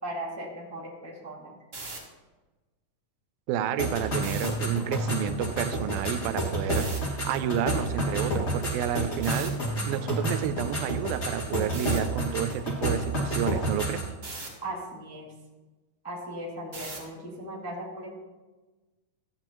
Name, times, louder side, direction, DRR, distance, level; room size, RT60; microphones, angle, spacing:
voice 1, 0.0-1.5 14.6-15.3 16.0-18.2, right 1 dB, 10° left, -5 dB, 0.9 m, -38 dB
sound 1, 1.6-2.0 4.2-4.5 6.7-7.0 9.2-9.5 11.7-12.0 14.2-14.5 16.7-17.1, right 3 dB, 25° right, 1.5 m, -38 dB
voice 2, 3.5-9.6 9.9-14.0, right 10 dB, 85° right, 12 dB, 2.3 m, -30 dB
sound 2, 3.8-14.1, right 1 dB, 35° left, 2.2 m, -30 dB
14.0 x 8.7 x 3.0 m, 1.2 s
omnidirectional pair, 4.1 m